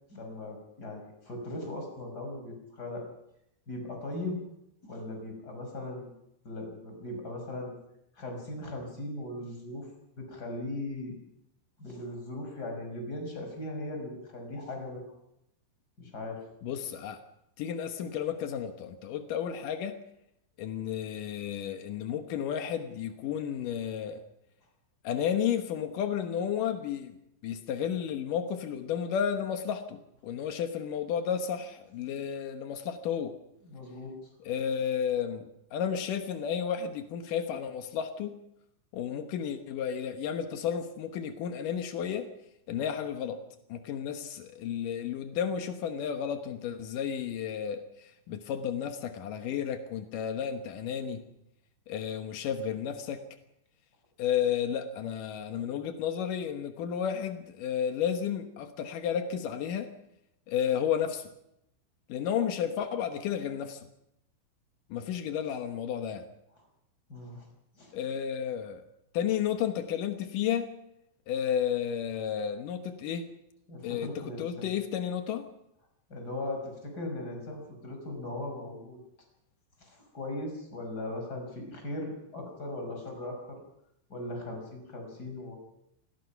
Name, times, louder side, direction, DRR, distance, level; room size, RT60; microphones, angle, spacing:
voice 1, 0.1-3.0 3.7-4.4 4.8-6.1 6.4-7.7 8.2-9.9 10.2-11.2 11.8-15.2 16.0-16.4 33.6-34.1 67.1-67.4 67.8-67.9 73.7-74.7 76.1-79.0 79.8-83.6 84.1-85.6, left 1 dB, 20° left, 3 dB, 5.6 m, -38 dB
voice 2, 16.6-17.2 17.6-20.0 20.6-24.2 25.0-27.2 27.4-33.4 34.5-38.4 38.9-42.3 42.7-43.4 43.7-51.2 51.9-53.2 54.2-59.9 60.5-61.3 62.1-63.9 64.9-66.3 67.9-68.8 69.1-70.7 71.3-73.3 73.8-75.5, left 8 dB, 85° left, 7 dB, 1.8 m, -32 dB
28.0 x 19.5 x 5.9 m, 0.81 s
omnidirectional pair, 5.8 m